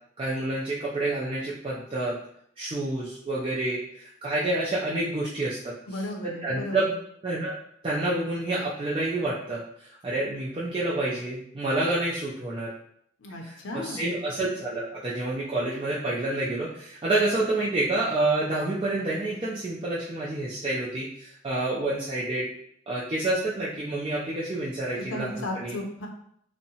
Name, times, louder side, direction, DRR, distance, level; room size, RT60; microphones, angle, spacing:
voice 1, 0.2-2.2 2.6-6.0 6.4-6.8 7.2-7.6 7.8-12.7 13.4-22.5 22.9-25.8, right 2 dB, 25° right, -7 dB, 0.3 m, -28 dB
voice 2, 5.9-6.9 13.2-14.1 25.0-26.1, left 1 dB, 75° left, 1 dB, 0.5 m, -35 dB
2.7 x 2.1 x 2.7 m, 0.69 s
head